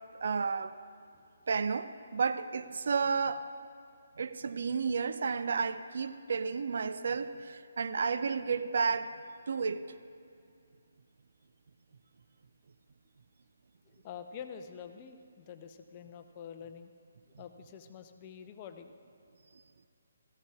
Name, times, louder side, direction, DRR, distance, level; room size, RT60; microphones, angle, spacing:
voice 1, 0.2-0.8 1.5-3.5 4.2-9.1 9.5-9.9, right 5 dB, 55° right, 11 dB, 0.4 m, -32 dB
voice 2, 14.0-16.9 17.4-19.0, left 7 dB, 30° left, 8 dB, 0.6 m, -47 dB
16.5 x 15.0 x 2.4 m, 2.4 s
figure-of-eight pair, 140°, 0 cm